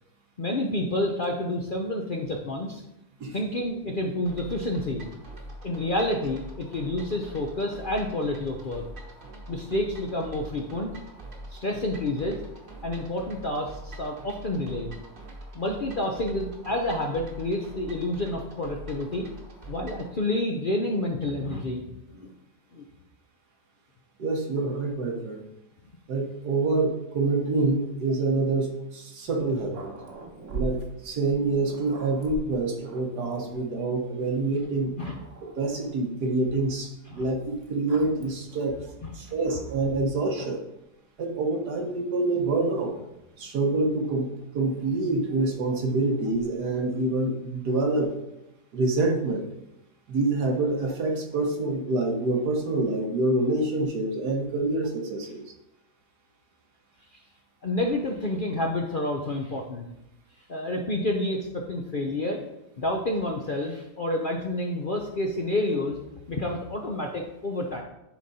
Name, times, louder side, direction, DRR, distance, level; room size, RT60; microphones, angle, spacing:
voice 1, 0.4-2.8 3.3-5.1 5.6-8.8 9.5-10.9 11.5-12.4 12.8-14.9 15.5-19.3 19.7-22.3 22.7-22.9 35.0-35.2 37.1-37.2 39.0-39.3 57.1-57.2 57.6-59.9 60.5-62.4 62.8-66.0 66.3-67.8, left 1 dB, 50° left, 1 dB, 0.6 m, -29 dB
sound 1, 4.3-20.1, right 1 dB, 35° right, 1.2 m, -44 dB
voice 2, 24.2-25.4 26.1-29.9 30.5-34.9 35.6-38.8 39.1-40.6 41.2-42.9 43.4-44.3 44.5-48.3 48.7-49.5 50.1-55.4, right 2 dB, 80° right, 1 dB, 1.8 m, -26 dB
Growling, 29.3-33.8 34.5-34.6 35.0-36.1 37.1-40.0 40.3-40.8 41.7-43.5 44.6-47.2, right 3 dB, 55° right, 1.4 m, -43 dB
10.5 x 3.8 x 4.2 m, 0.89 s
omnidirectional pair, 1.7 m